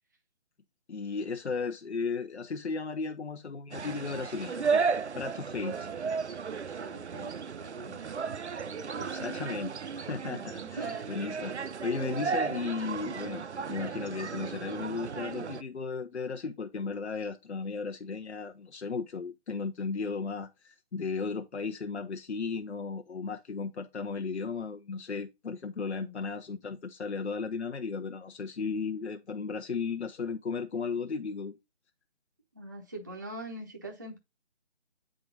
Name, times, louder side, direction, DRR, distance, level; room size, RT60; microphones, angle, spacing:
voice 1, 0.9-4.8 5.1-5.9 9.0-11.5 11.8-31.5, left 5 dB, 75° left, 0.9 m, -35 dB
sound 1, 3.7-15.6, right 5 dB, 80° right, 0.7 m, -34 dB
voice 2, 6.8-8.3 8.6-9.2 10.7-11.1 11.4-11.6 26.0-26.1 32.5-34.2, right 2 dB, 15° right, 0.6 m, -43 dB
9.3 x 3.8 x 3.9 m
figure-of-eight pair, 165°, 34 cm